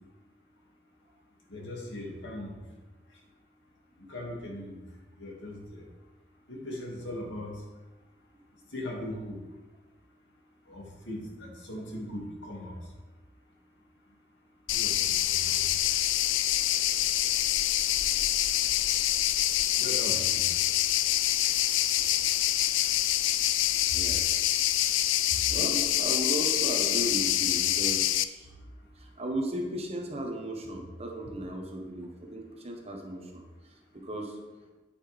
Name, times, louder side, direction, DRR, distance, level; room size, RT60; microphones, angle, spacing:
voice 1, 1.5-2.6 4.0-4.8 5.2-5.8 6.5-7.6 8.7-9.4 10.7-12.8 14.7-14.9 15.3-15.7 19.8-20.6, left 1 dB, 75° left, -2 dB, 2.4 m, -39 dB
sound 1, 14.7-28.2, left 13 dB, 90° left, 0.4 m, -26 dB
voice 2, 23.9-24.4 25.5-28.5 29.0-34.4, right 1 dB, 35° right, 1 dB, 1.3 m, -36 dB
9.3 x 8.6 x 3.5 m, 1.2 s
head